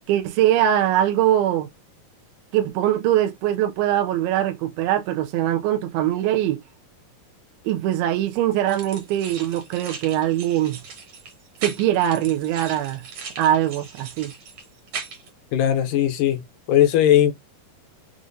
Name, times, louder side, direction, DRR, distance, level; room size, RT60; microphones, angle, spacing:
voice 1, 0.1-1.7 2.5-6.6 7.7-10.8 11.6-13.0 13.4-14.3, right 12 dB, 85° right, 2.4 m, -22 dB
sound 1, 8.7-15.3, right 5 dB, 60° right, 1.8 m, -38 dB
voice 2, 15.5-16.4 16.7-17.3, left 11 dB, 75° left, 2.0 m, -18 dB
6.2 x 2.5 x 2.6 m
omnidirectional pair, 4.3 m